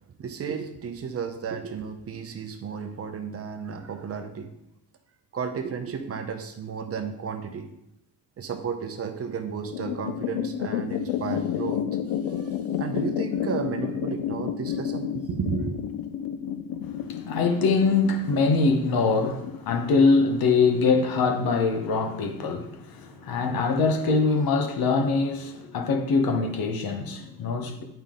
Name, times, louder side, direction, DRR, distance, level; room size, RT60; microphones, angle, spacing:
voice 1, 0.2-4.5 5.3-7.7 8.4-11.8 12.4-15.8, right 6 dB, 35° right, 0.8 m, -33 dB
sound 1, 9.7-20.4, left 9 dB, 75° left, 0.7 m, -31 dB
voice 2, 16.8-27.8, left 4 dB, 55° left, 1.2 m, -23 dB
8.9 x 5.6 x 3.8 m
cardioid pair, 130°, 42 cm